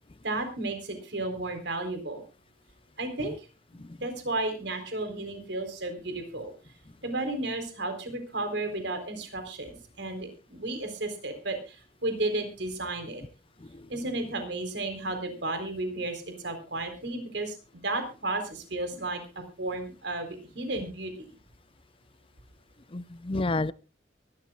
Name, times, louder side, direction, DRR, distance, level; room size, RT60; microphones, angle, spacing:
voice 1, 0.2-2.2 3.0-3.5 4.0-6.5 7.0-13.2 13.9-19.2 19.6-21.1, right 2 dB, 70° right, 4.0 m, -33 dB
voice 2, 22.9-23.7, left 2 dB, 30° left, 0.6 m, -31 dB
23.5 x 12.5 x 2.4 m
head